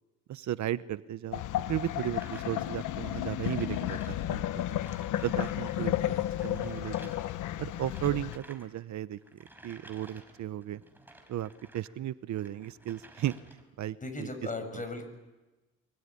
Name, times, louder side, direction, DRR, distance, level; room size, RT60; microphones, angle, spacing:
voice 1, 0.3-1.4 1.7-4.8 5.2-6.1 6.4-7.1 7.6-9.2 9.6-10.8 11.3-13.4 13.8-14.3, right 12 dB, 70° right, 15 dB, 0.9 m, -35 dB
sound 1, 1.3-8.4, left 13 dB, 80° left, 1.0 m, -33 dB
sound 2, 2.0-5.8 6.0-11.9 12.3-13.8, right 1 dB, 5° right, 5.2 m, -54 dB
voice 2, 5.7-6.5 13.9-15.1, left 2 dB, 25° left, 8 dB, 7.4 m, -39 dB
25.0 x 23.5 x 9.9 m, 1.1 s
cardioid pair, 90°, 30 cm